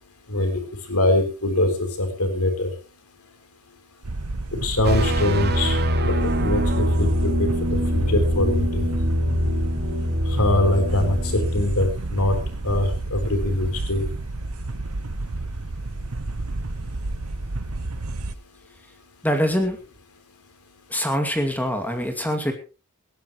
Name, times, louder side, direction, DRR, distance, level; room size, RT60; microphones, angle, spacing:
voice 1, 0.3-0.6 0.9-2.7 4.6-5.8 6.2-7.1 7.4-7.5 7.9-8.8 10.4-12.4 12.6-14.0, left 1 dB, 85° left, 6 dB, 3.9 m, -23 dB
sound 1, 4.0-18.3, right 2 dB, 80° right, 1.1 m, -30 dB
sound 2, 4.8-11.7, equal, 50° right, 2.7 m, -24 dB
voice 2, 19.2-19.8 20.9-22.5, equal, 10° left, 5 dB, 2.2 m, -24 dB
19.5 x 16.0 x 3.1 m, 0.34 s
head